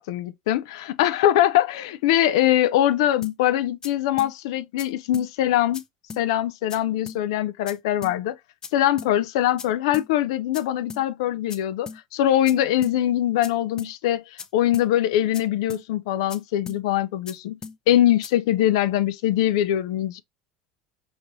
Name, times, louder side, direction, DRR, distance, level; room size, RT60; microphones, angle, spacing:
voice 1, 0.0-5.8 6.2-8.4 8.7-17.6 17.9-20.2, left 12 dB, 85° left, 0.3 m, -22 dB
sound 1, 3.2-3.4 3.8-3.9 4.2-4.3 4.8-4.9 5.1-5.3 5.7-5.8 6.1-6.2 6.7-6.8 7.1-7.2 7.7-7.8 8.0-8.2 8.6-8.7 9.0-9.1 9.6-9.7 9.9-10.1 10.5-10.6 10.9-11.0 11.5-11.6 11.9-12.0 12.5-12.6 12.8-13.0 13.4-13.5 13.8-13.9 14.4-14.5 14.7-14.9 15.3-15.4 15.7-15.8 16.3-16.4 16.7-16.8 17.3-17.4 17.6-17.8 18.2-18.3, left 5 dB, 25° left, 0.5 m, -38 dB
4.5 x 3.0 x 2.6 m
supercardioid pair, 115°, 3 cm